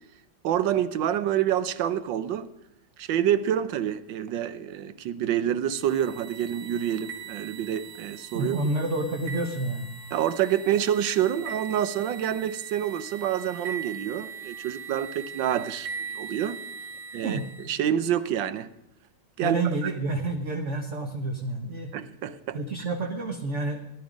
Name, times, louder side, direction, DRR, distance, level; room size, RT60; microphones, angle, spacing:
voice 1, 0.4-2.5 3.0-8.6 10.1-16.6 17.1-17.4 17.7-18.7 19.4-19.6 21.9-22.6, right 10 dB, 70° right, 1.3 m, -27 dB
sound 1, 5.7-17.8, right 6 dB, 90° right, 3.0 m, -41 dB
voice 2, 8.3-9.9 17.2-17.4 19.4-21.9 22.5-23.8, right 2 dB, 45° right, 1.2 m, -29 dB
17.0 x 11.5 x 5.1 m
omnidirectional pair, 2.3 m